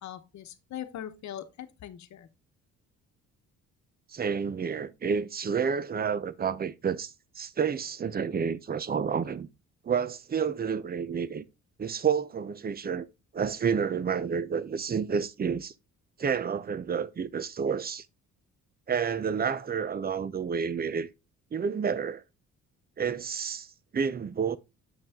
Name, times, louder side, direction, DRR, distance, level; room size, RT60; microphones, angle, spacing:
voice 1, 0.0-2.3, left 10 dB, 70° left, 1.0 m, -41 dB
voice 2, 4.1-9.5 9.8-11.4 11.8-13.1 13.3-15.7 16.2-18.0 18.9-21.1 21.5-22.2 23.0-24.6, right 6 dB, 30° right, 0.7 m, -30 dB
7.5 x 5.5 x 3.5 m
cardioid pair, 90°, 30 cm